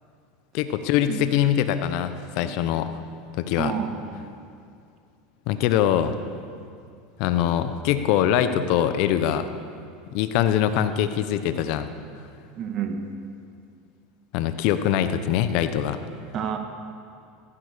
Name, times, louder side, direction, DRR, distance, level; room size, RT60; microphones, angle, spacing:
voice 1, 0.5-2.9 3.4-3.7 5.5-6.1 7.2-9.5 10.1-11.9 14.3-16.0, left 10 dB, 65° left, 10 dB, 1.0 m, -23 dB
voice 2, 3.6-4.3 12.6-13.0 16.3-16.6, right 7 dB, 45° right, 5 dB, 2.0 m, -30 dB
14.5 x 14.0 x 6.8 m, 2.3 s
hypercardioid pair, 100°, 0 cm